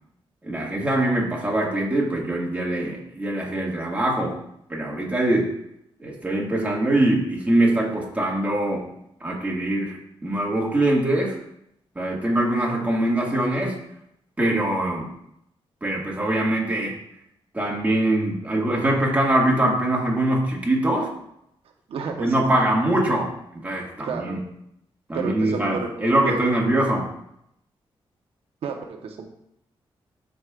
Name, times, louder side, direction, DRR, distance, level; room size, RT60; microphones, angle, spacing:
voice 1, 0.4-4.3 4.7-5.5 6.0-8.9 9.2-11.4 12.0-13.8 14.4-15.1 15.8-16.9 17.5-21.1 22.2-24.4 25.1-27.1, right 1 dB, 15° right, -3 dB, 2.0 m, -23 dB
voice 2, 21.9-22.3 24.0-24.4 25.1-26.5 28.6-29.3, right 5 dB, 85° right, 3 dB, 1.1 m, -31 dB
13.0 x 5.3 x 2.5 m, 0.77 s
wide cardioid pair, 125°, 10 cm